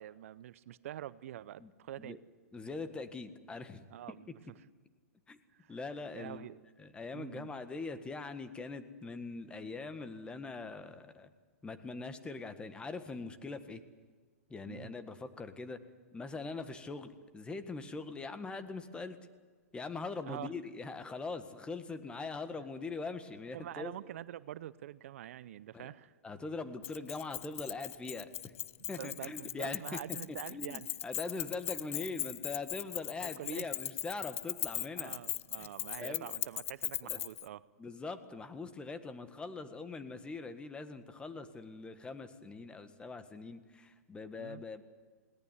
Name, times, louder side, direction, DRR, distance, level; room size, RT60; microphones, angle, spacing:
voice 1, 0.0-2.2 3.9-4.4 5.5-5.8 6.1-6.6 7.1-7.5 14.7-14.9 20.3-20.5 23.5-26.1 28.8-30.9 33.2-33.8 35.0-37.6 44.4-44.6, right 12 dB, 60° right, 18 dB, 0.6 m, -46 dB
voice 2, 2.5-3.9 5.3-5.4 5.7-6.5 6.8-11.3 11.6-13.8 14.5-15.8 16.1-19.2 19.7-23.9 25.7-25.9 26.2-28.5 28.9-30.0 30.5-35.2 35.6-35.7 36.0-36.3 37.0-37.2 37.8-44.8, left 3 dB, 10° left, 10 dB, 1.7 m, -42 dB
Keys jangling, 26.8-37.5, left 14 dB, 60° left, 0.6 m, -39 dB
21.0 x 18.0 x 9.8 m, 1.4 s
hypercardioid pair, 120°, 8 cm